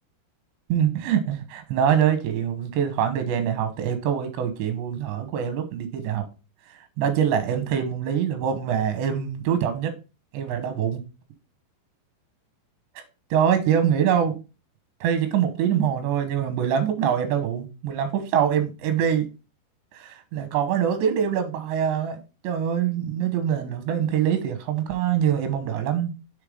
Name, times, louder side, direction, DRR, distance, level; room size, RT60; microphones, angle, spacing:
voice 1, 0.7-6.3 7.0-9.9 10.3-11.0 13.0-13.1 13.3-14.4 15.0-19.3 19.9-22.2 22.4-26.1, right 8 dB, 90° right, 3.3 m, -24 dB
9.8 x 3.5 x 3.6 m
omnidirectional pair, 4.9 m